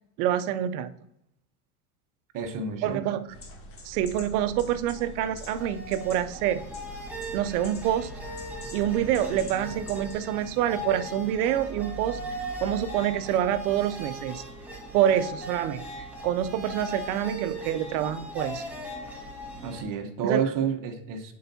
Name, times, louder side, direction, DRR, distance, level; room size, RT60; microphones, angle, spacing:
voice 1, 0.2-0.9 2.8-3.3 3.8-6.6 7.3-8.1 8.7-12.2 12.6-14.4 14.9-18.7 20.2-20.4, right 11 dB, 75° right, 12 dB, 0.7 m, -27 dB
voice 2, 2.3-3.2 19.6-21.3, right 7 dB, 45° right, 6 dB, 1.1 m, -29 dB
sound 1, 3.3-10.1, left 1 dB, 30° left, 1.3 m, -44 dB
sound 2, 5.0-19.8, right 1 dB, 5° right, 1.7 m, -39 dB
10.5 x 4.6 x 2.7 m, 0.79 s
supercardioid pair, 115°, 45 cm